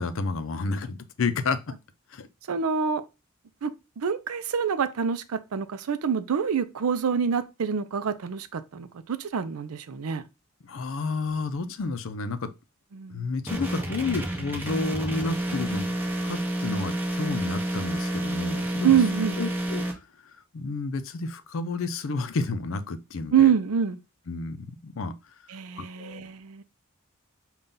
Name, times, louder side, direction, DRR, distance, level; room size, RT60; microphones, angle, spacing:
voice 1, 0.0-1.6 2.1-2.3 10.6-12.5 13.1-16.0 16.2-19.0 19.4-19.9 20.5-23.5 24.3-25.1 25.8-26.3, left 3 dB, 65° left, 0.5 m, -31 dB
voice 2, 2.5-3.0 3.6-10.2 12.9-13.3 18.8-19.4 23.3-24.0 25.5-26.6, right 7 dB, 90° right, 0.5 m, -26 dB
sound 1, 13.5-19.9, right 1 dB, 10° right, 0.7 m, -29 dB
5.4 x 2.3 x 3.7 m
head